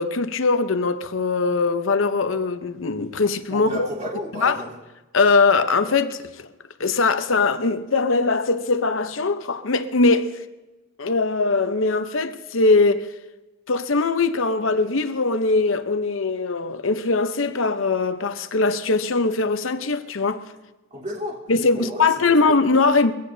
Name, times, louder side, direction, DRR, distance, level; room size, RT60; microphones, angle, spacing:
voice 1, 0.0-3.9 4.4-4.6 5.1-6.5 6.8-10.4 11.0-13.1 13.7-20.4 21.5-23.1, left 3 dB, 75° left, 0.8 m, -21 dB
voice 2, 3.5-4.7 20.9-21.4 21.7-22.4, left 1 dB, 40° right, 3.7 m, -32 dB
22.5 x 16.5 x 2.8 m
head